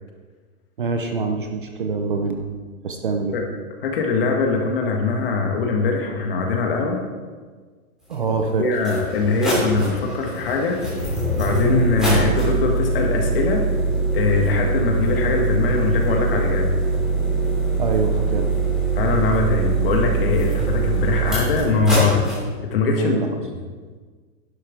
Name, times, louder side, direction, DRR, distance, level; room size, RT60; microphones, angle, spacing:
voice 1, 0.8-2.5 2.8-3.4 8.1-8.7 17.8-18.5 23.0-23.3, right 4 dB, 35° right, 5 dB, 0.6 m, -24 dB
voice 2, 3.8-7.0 8.6-10.8 11.3-13.6 14.1-16.7 18.9-22.2 22.7-23.1, left 4 dB, 40° left, 2 dB, 1.7 m, -22 dB
sound 1, 8.1-8.2 8.7-22.4, right 3 dB, ahead, 2.8 m, -22 dB
11.0 x 11.0 x 3.7 m, 1.5 s
hypercardioid pair, 175°, 45 cm